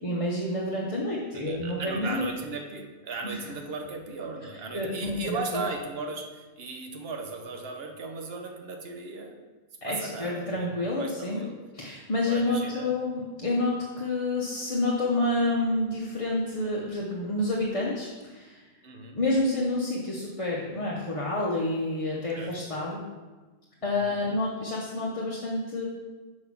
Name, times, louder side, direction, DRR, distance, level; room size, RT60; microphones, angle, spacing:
voice 1, 0.0-2.3 3.2-3.4 4.7-5.6 9.8-11.4 11.7-18.6 19.1-23.0 23.8-25.8, left 2 dB, 30° left, -4 dB, 0.8 m, -29 dB
voice 2, 1.3-9.5 9.8-11.6 12.2-13.0 18.8-19.2 22.3-22.5 23.8-24.2, right 3 dB, 50° right, 3 dB, 1.1 m, -37 dB
6.2 x 5.3 x 6.0 m, 1.3 s
omnidirectional pair, 1.4 m